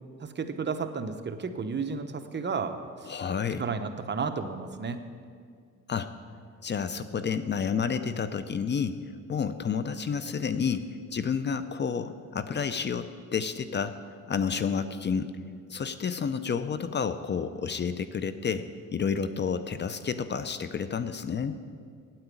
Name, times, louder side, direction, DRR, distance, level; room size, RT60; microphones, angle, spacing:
voice 1, 0.2-3.1 3.6-5.0, right 5 dB, 35° right, 8 dB, 0.9 m, -32 dB
voice 2, 3.1-3.6 5.9-6.1 6.6-9.0 9.3-10.8 11.1-14.0 14.3-15.3 15.7-18.6 18.9-21.6, left 6 dB, 35° left, 12 dB, 0.6 m, -30 dB
9.2 x 8.8 x 8.4 m, 2.1 s
cardioid pair, 90°, 30 cm